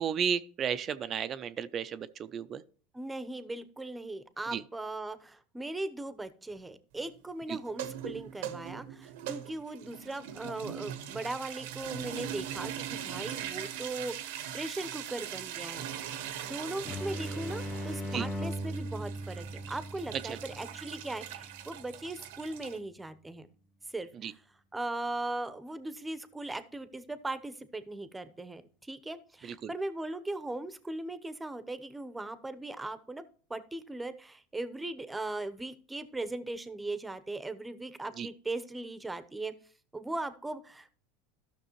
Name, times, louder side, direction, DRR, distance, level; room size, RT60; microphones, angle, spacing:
voice 1, 0.0-2.6 4.5-4.6 7.5-7.6 18.1-18.3 20.1-20.4 24.1-24.3 29.4-29.7 38.2-38.3, right 8 dB, 40° right, 0.5 m, -33 dB
voice 2, 2.9-23.5 23.9-24.3 24.7-33.2 33.5-39.5 39.9-40.9, right 2 dB, 10° right, 0.8 m, -39 dB
sound 1, 7.7-22.8, right 10 dB, 75° right, 0.9 m, -41 dB
sound 2, 16.9-22.4, equal, 20° left, 0.8 m, -39 dB
13.0 x 6.0 x 3.1 m
hypercardioid pair, 100°, 0 cm